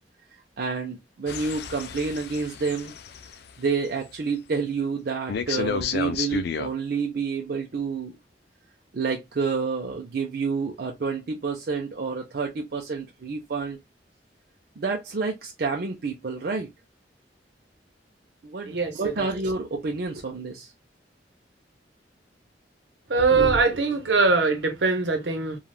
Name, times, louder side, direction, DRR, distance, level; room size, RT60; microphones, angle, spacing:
voice 1, 0.6-2.9 3.6-8.1 8.9-13.8 14.8-16.7 18.4-20.7, right 4 dB, 55° right, 0.5 m, -29 dB
sound 1, 1.3-3.3 5.3-6.7, left 6 dB, 60° left, 0.4 m, -31 dB
voice 2, 23.1-25.6, right 4 dB, 80° right, 0.9 m, -21 dB
3.3 x 2.3 x 2.3 m
head